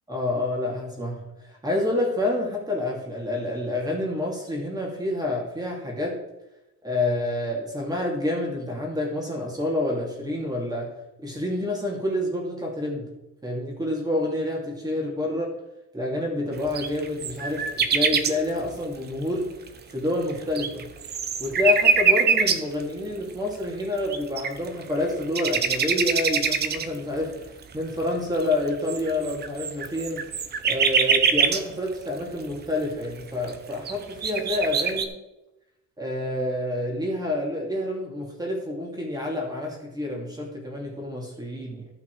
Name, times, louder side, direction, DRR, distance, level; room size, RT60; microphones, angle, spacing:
voice 1, 0.1-6.2 6.8-13.1 13.4-15.5 15.9-19.5 19.9-20.9 21.4-30.3 30.6-35.1 36.0-41.9, left 1 dB, 15° right, -2 dB, 2.8 m, -28 dB
sound 1, 16.8-18.3 19.7-19.8 20.3-22.8 23.8-23.9 24.1-24.8 25.2-27.0 27.6-27.7 28.3-31.6 32.8-32.9 33.4-33.5 33.9-35.1, right 6 dB, 35° right, 0.8 m, -23 dB
14.5 x 5.9 x 4.8 m, 0.94 s
cardioid pair, 170°, 29 cm